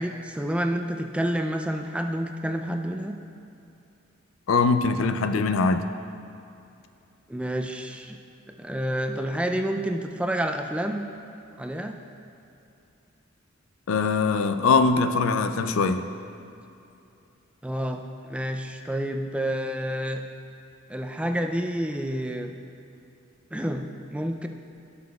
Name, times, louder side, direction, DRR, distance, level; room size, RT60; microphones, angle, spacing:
voice 1, 0.0-3.2 7.3-8.2 8.6-11.1 11.6-12.0 17.6-20.2 20.9-22.5 23.5-24.5, equal, 5° right, 4 dB, 0.3 m, -29 dB
voice 2, 4.5-5.8 13.9-16.0, left 4 dB, 85° left, 9 dB, 0.4 m, -22 dB
16.5 x 6.0 x 2.3 m, 2.7 s
head